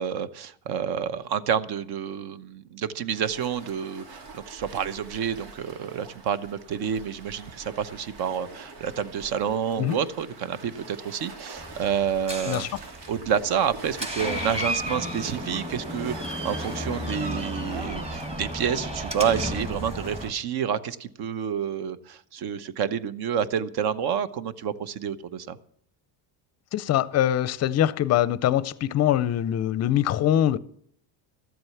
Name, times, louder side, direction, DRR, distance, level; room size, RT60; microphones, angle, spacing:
voice 1, 0.0-12.7 13.1-25.6, right 8 dB, 50° right, 1.0 m, -29 dB
Waves surf, 3.1-20.3, right 3 dB, 85° right, 3.1 m, -44 dB
Door, 11.6-20.3, equal, 10° right, 1.6 m, -33 dB
voice 2, 26.7-30.6, left 11 dB, 35° left, 0.5 m, -23 dB
13.5 x 7.8 x 7.0 m
cardioid pair, 135°, 48 cm